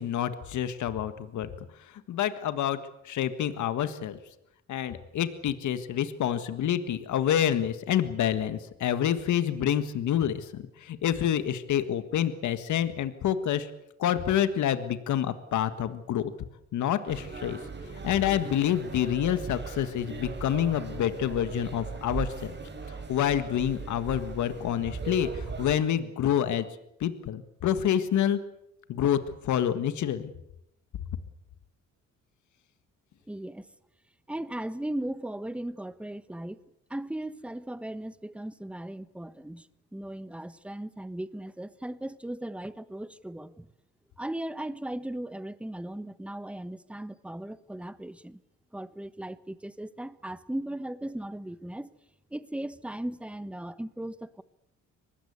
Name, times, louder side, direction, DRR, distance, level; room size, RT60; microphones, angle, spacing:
voice 1, 0.0-1.5 1.8-2.8 3.0-4.2 4.7-13.7 14.0-16.3 16.7-22.5 23.1-26.7 27.0-28.4 28.9-30.3, left 10 dB, 75° left, 1.7 m, -28 dB
sound 1, 17.1-25.7, right 5 dB, 35° right, 5.1 m, -38 dB
voice 2, 33.3-33.7 34.3-36.6 36.9-39.7 39.9-43.7 44.2-48.4 48.7-51.9 52.3-54.4, right 1 dB, 5° right, 1.1 m, -37 dB
24.0 x 20.0 x 8.3 m
cardioid pair, 90°, 30 cm